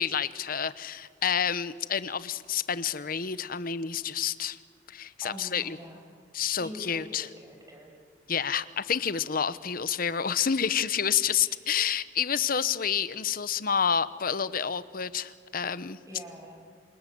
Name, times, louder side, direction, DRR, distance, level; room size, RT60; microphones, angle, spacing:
voice 1, 0.0-4.6 4.9-5.8 6.3-7.3 8.3-16.0, left 7 dB, 50° left, 15 dB, 0.9 m, -29 dB
voice 2, 5.2-6.0 6.6-7.9 11.3-11.5 16.1-16.6, equal, 20° right, 1 dB, 6.5 m, -45 dB
28.0 x 25.0 x 7.8 m, 2.1 s
head